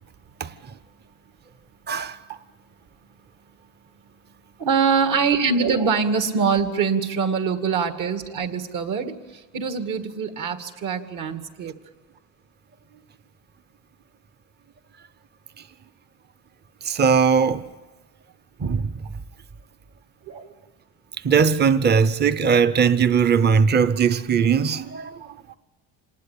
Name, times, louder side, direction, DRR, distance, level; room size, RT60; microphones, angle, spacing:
voice 1, 1.9-2.2 16.8-17.7 18.6-19.0 21.2-25.3, right 6 dB, 30° right, 0.8 m, -19 dB
voice 2, 4.6-9.1 9.5-11.7 20.3-20.4, right 5 dB, 60° right, 2.3 m, -23 dB
27.0 x 19.5 x 8.5 m
cardioid pair, 130°, 35 cm